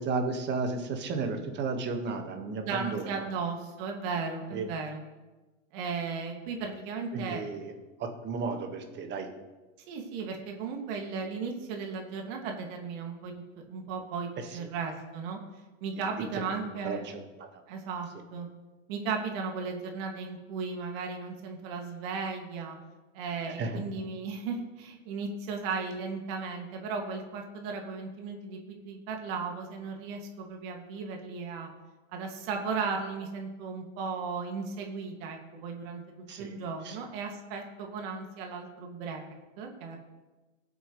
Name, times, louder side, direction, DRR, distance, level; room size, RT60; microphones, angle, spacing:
voice 1, 0.0-3.2 4.5-4.7 7.1-7.7 8.0-9.3 16.3-16.5 16.8-17.5 23.5-23.8 36.3-36.6 36.8-37.0, right 4 dB, 30° right, 5 dB, 1.6 m, -33 dB
voice 2, 2.6-5.0 5.7-7.4 9.9-13.4 13.7-15.4 15.8-17.1 17.7-18.5 18.9-22.8 23.1-31.7 32.1-36.0 36.4-39.3 39.6-40.0, right 5 dB, 50° right, 2 dB, 2.3 m, -36 dB
18.0 x 8.0 x 3.2 m, 1.1 s
hypercardioid pair, 130°, 38 cm